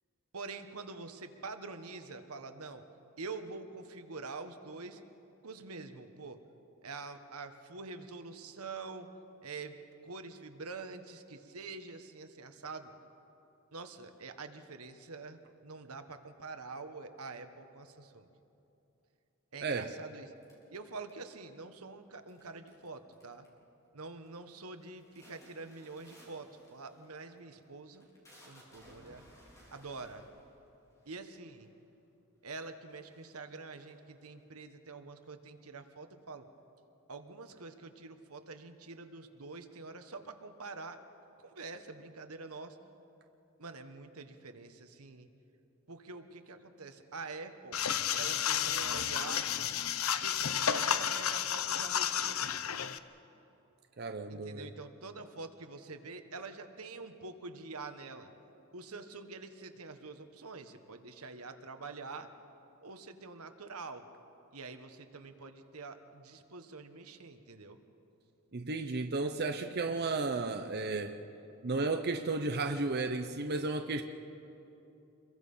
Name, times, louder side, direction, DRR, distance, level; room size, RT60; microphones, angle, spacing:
voice 1, 0.3-2.8 3.2-5.0 5.4-6.4 6.8-9.1 9.4-9.8 10.0-12.9 13.7-18.3 19.5-20.3 20.7-23.5 23.9-28.1 28.4-29.2 29.7-30.2 31.1-31.7 32.4-36.5 37.1-41.0 41.4-42.8 43.6-45.3 45.9-47.8 48.1-49.5 50.2-52.6 54.3-58.3 58.7-62.3 62.8-64.0 64.5-67.8, right 3 dB, 80° right, 8 dB, 1.4 m, -46 dB
sound 1, 20.4-21.5 22.3-22.9 23.1-23.6 24.0-24.4 24.7-31.8 32.4-32.5 32.8-34.4, equal, 15° left, 4.5 m, -60 dB
sound 2, 47.7-53.0, left 9 dB, 70° left, 0.7 m, -32 dB
voice 2, 54.0-54.7 68.5-71.2 71.6-74.0, right 3 dB, 45° right, 6 dB, 0.7 m, -33 dB
27.0 x 22.0 x 5.6 m, 2.9 s
head